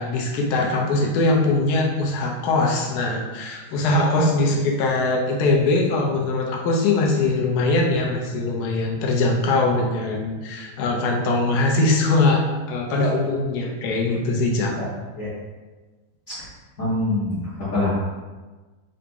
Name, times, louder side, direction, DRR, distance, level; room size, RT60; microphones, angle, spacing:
voice 1, 0.0-14.8, left 2 dB, 65° left, 0 dB, 1.0 m, -21 dB
voice 2, 16.8-18.0, left 2 dB, 45° left, -13 dB, 1.3 m, -24 dB
3.9 x 2.6 x 3.4 m, 1.3 s
omnidirectional pair, 2.3 m